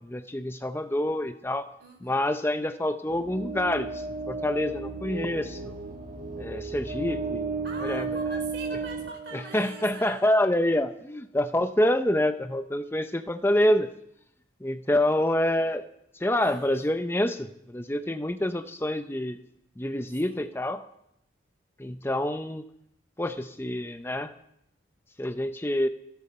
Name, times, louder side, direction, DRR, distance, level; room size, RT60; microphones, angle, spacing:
voice 1, 0.0-1.7 2.0-5.7 6.4-7.6 7.8-8.1 9.3-13.9 14.6-15.8 16.1-19.4 19.8-20.8 21.8-22.7 23.2-24.3 25.2-25.9, left 1 dB, 15° left, 8 dB, 0.7 m, -27 dB
voice 2, 1.8-2.2 7.6-10.3 16.4-16.7 20.1-20.4, right 3 dB, 65° right, 3 dB, 4.4 m, -43 dB
sound 1, 3.1-10.0, right 4 dB, 45° right, 1.4 m, -34 dB
28.0 x 10.5 x 4.4 m, 0.76 s
head